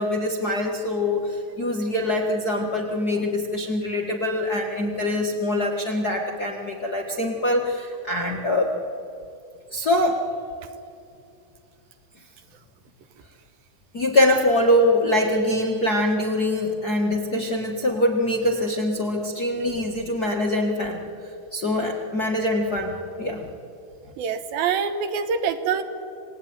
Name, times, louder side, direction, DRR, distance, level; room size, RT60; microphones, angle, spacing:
voice 1, 0.0-8.7 9.7-10.2 13.9-21.0 21.5-23.5, left 1 dB, 40° left, 0 dB, 1.4 m, -23 dB
voice 2, 24.2-25.8, right 6 dB, 75° right, 9 dB, 3.1 m, -25 dB
28.0 x 18.5 x 9.6 m, 2.6 s
omnidirectional pair, 4.3 m